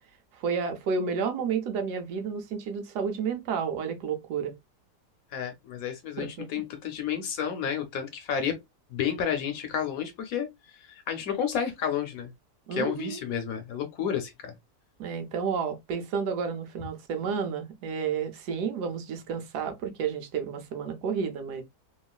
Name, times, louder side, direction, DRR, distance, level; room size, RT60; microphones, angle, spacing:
voice 1, 0.3-4.6 6.2-6.5 12.7-13.2 15.0-21.6, right 6 dB, 80° right, 1.2 m, -31 dB
voice 2, 5.3-8.6 8.9-12.3 12.7-14.5, left 8 dB, 65° left, 1.0 m, -31 dB
3.0 x 2.4 x 2.2 m
omnidirectional pair, 1.7 m